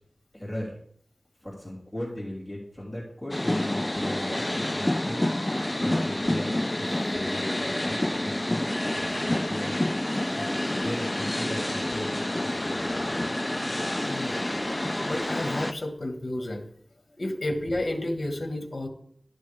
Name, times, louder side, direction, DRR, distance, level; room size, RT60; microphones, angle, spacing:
voice 1, 0.3-0.7 1.4-9.8 10.3-13.2, left 1 dB, ahead, -5 dB, 2.9 m, -38 dB
sound 1, 3.3-15.7, left 1 dB, 20° left, 0.3 m, -28 dB
voice 2, 14.0-14.4 15.0-16.6 17.2-18.9, left 1 dB, 55° left, 4 dB, 1.5 m, -31 dB
12.0 x 6.3 x 3.4 m, 0.65 s
wide cardioid pair, 60°, 0 cm